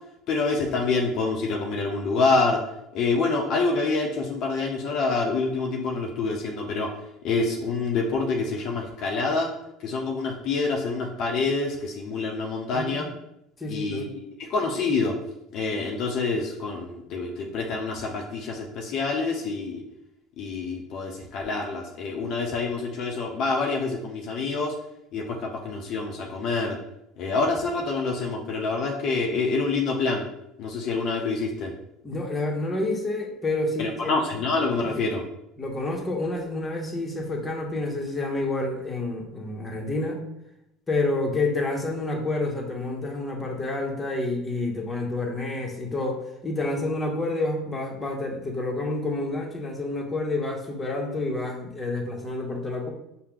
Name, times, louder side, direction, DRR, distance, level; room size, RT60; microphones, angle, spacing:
voice 1, 0.3-2.6 2.9-6.9 7.2-9.5 9.8-13.1 13.7-14.0 14.4-15.2 15.5-19.8 20.4-24.7 25.1-26.8 27.2-30.3 30.6-31.7 33.8-35.2, left 3 dB, 55° left, 0 dB, 0.6 m, -26 dB
voice 2, 12.7-13.0 13.6-14.1 32.0-34.1 34.9-35.0 35.6-40.2 40.9-52.9, left 2 dB, 20° left, 1 dB, 0.9 m, -29 dB
5.6 x 2.1 x 3.7 m, 0.84 s
hypercardioid pair, 75°, 0 cm